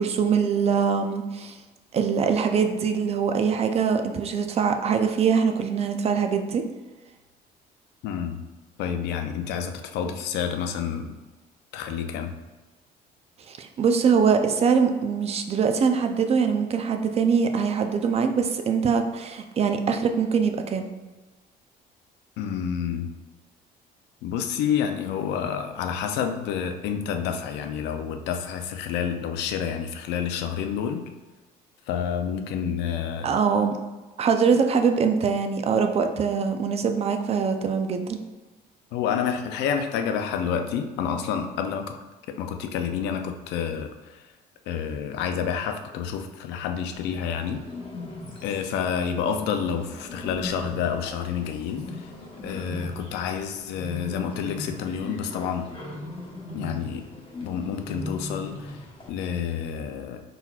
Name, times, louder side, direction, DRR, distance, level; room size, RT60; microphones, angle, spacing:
voice 1, 0.0-1.6 1.9-6.6 13.5-20.9 33.2-33.7 34.2-38.2, right 6 dB, 40° right, 6 dB, 0.4 m, -23 dB
voice 2, 8.0-8.4 8.8-11.1 11.7-12.3 22.4-23.1 24.2-31.1 31.9-33.3 38.9-41.9 42.3-44.3 44.7-47.6 48.4-52.1 52.4-55.7 56.5-57.1 57.4-60.2, left 7 dB, 85° left, 6 dB, 0.5 m, -29 dB
Bird, 46.9-59.1, left 2 dB, 30° left, 1.0 m, -39 dB
4.2 x 4.0 x 2.4 m, 1.2 s
cardioid pair, 110°, 17 cm